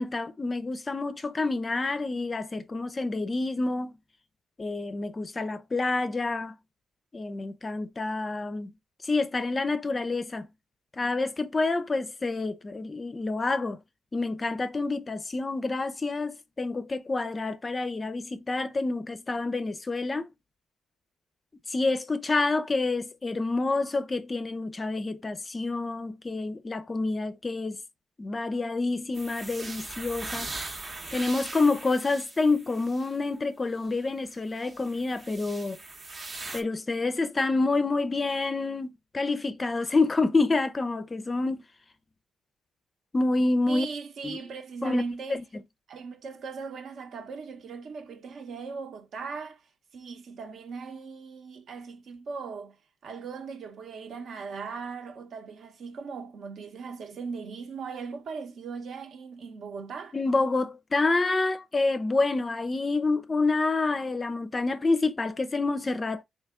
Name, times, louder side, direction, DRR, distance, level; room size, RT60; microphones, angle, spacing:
voice 1, 0.0-3.9 4.6-6.5 7.1-8.7 9.0-10.5 10.9-13.8 14.1-20.3 21.7-27.8 28.2-30.5 31.1-35.8 36.5-41.6 43.1-43.9 44.2-44.4 44.8-45.0 45.3-45.4 60.1-66.2, left 3 dB, 25° left, 0.4 m, -28 dB
sound 1, 29.1-33.2 33.8-33.9 34.5-36.6, right 3 dB, 30° right, 0.7 m, -40 dB
voice 2, 43.7-45.4 45.9-49.6 49.9-52.8 53.0-60.2, right 5 dB, 60° right, 0.9 m, -39 dB
3.5 x 2.7 x 3.5 m
cardioid pair, 90°, 0 cm